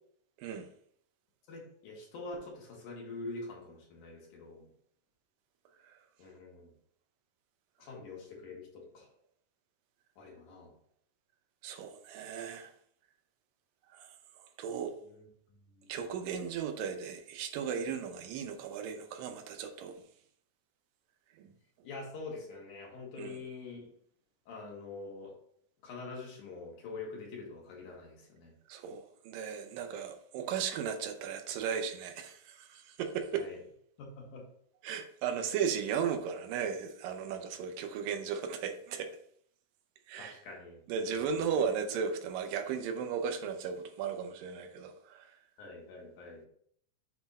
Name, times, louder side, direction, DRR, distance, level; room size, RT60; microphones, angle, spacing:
voice 1, 1.5-4.7 6.2-6.7 7.8-9.1 10.2-10.7 15.0-15.3 15.8-15.9 21.8-23.8 24.5-25.3 25.8-28.5 33.3-33.6 34.2-34.4 40.2-41.6 45.6-46.4, left 3 dB, 70° left, 2.9 m, -45 dB
voice 2, 11.6-12.7 13.9-14.1 14.6-14.9 15.9-20.0 21.4-21.5 23.2-23.4 28.7-33.5 34.8-39.1 40.1-40.4 40.9-45.3, right 7 dB, 90° right, 2.5 m, -36 dB
7.7 x 3.5 x 4.0 m
omnidirectional pair, 3.8 m